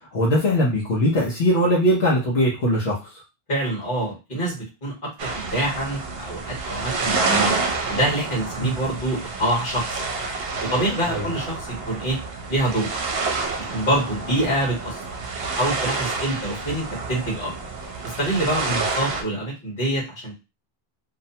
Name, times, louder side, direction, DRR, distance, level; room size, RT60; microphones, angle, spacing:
voice 1, 0.0-3.2 8.6-8.7 11.1-11.3 18.7-18.8, equal, 80° left, -5 dB, 1.0 m, -21 dB
voice 2, 3.5-7.5 7.9-10.0 10.6-12.2 12.5-12.9 13.6-15.0 15.4-17.5 18.0-20.4, right 1 dB, 55° left, -3 dB, 1.5 m, -26 dB
sound 1, 5.2-19.2, right 3 dB, 75° right, 0.8 m, -28 dB
2.7 x 2.1 x 2.7 m, 0.27 s
omnidirectional pair, 1.0 m